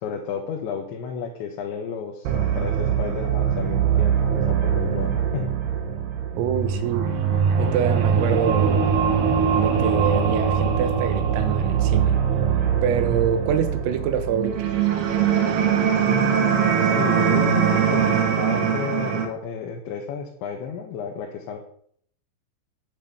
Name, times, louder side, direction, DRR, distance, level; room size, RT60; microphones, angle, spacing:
voice 1, 0.0-2.3 2.6-5.5 16.1-21.6, left 7 dB, 70° left, 1 dB, 3.6 m, -32 dB
sound 1, 2.3-19.3, right 7 dB, 60° right, 3.3 m, -22 dB
voice 2, 6.4-7.1 7.6-9.0 9.5-12.2 12.8-14.7, right 8 dB, 85° right, 9 dB, 4.1 m, -25 dB
12.0 x 10.0 x 7.1 m, 0.62 s
omnidirectional pair, 5.9 m